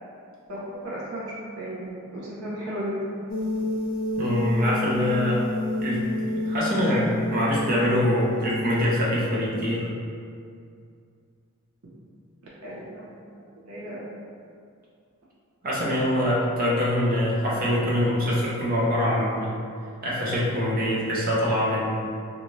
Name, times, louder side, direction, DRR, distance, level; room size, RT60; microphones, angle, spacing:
voice 1, 0.5-3.0 12.6-13.3 13.6-14.1, right 1 dB, 85° right, -7 dB, 0.7 m, -35 dB
sound 1, 3.3-9.2, left 2 dB, 40° left, 0.4 m, -29 dB
voice 2, 4.2-5.4 5.8-6.0 6.3-9.9 15.6-19.5 20.0-22.0, equal, 40° right, -6 dB, 0.6 m, -24 dB
2.6 x 2.4 x 3.0 m, 2.3 s
head